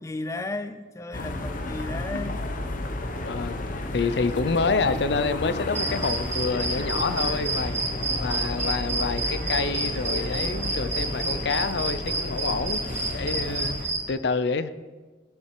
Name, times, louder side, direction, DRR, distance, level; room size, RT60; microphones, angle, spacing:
voice 1, 0.0-2.4 7.9-8.4 12.5-12.6 13.1-13.6, left 2 dB, 15° left, 10 dB, 0.4 m, -35 dB
sound 1, 1.1-13.9, left 1 dB, 50° left, 0.9 m, -32 dB
voice 2, 3.2-7.7 8.2-12.8 13.1-14.7, left 4 dB, 65° left, 13 dB, 0.5 m, -28 dB
sound 2, 5.7-14.1, right 2 dB, 15° right, 1.9 m, -30 dB
sound 3, 6.2-7.8 8.6-12.2, right 2 dB, 45° right, 2.1 m, -45 dB
16.5 x 5.7 x 4.6 m, 1.3 s
head